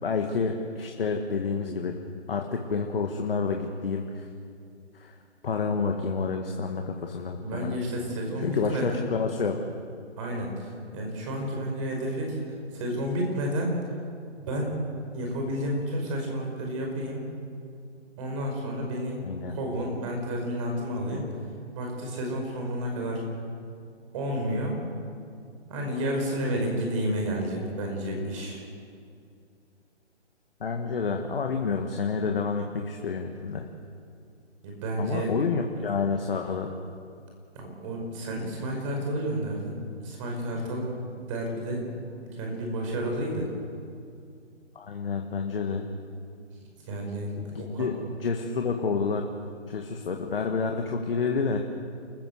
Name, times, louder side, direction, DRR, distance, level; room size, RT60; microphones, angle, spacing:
voice 1, 0.0-2.0 2.3-4.3 4.9-5.2 5.4-7.8 8.4-9.6 19.2-19.6 30.6-33.7 35.0-36.7 44.8-45.9 47.4-47.9 48.2-49.2 49.7-51.6, left 5 dB, 50° left, 3 dB, 1.9 m, -29 dB
voice 2, 7.4-9.0 10.2-13.8 14.4-14.8 15.1-17.2 18.2-21.2 21.7-23.2 24.1-24.8 25.7-28.6 34.6-35.3 37.5-41.8 42.2-43.5 46.5-46.6 46.9-47.9, equal, 25° right, 1 dB, 5.3 m, -31 dB
29.0 x 15.0 x 8.0 m, 2.4 s
figure-of-eight pair, 145°, 35 cm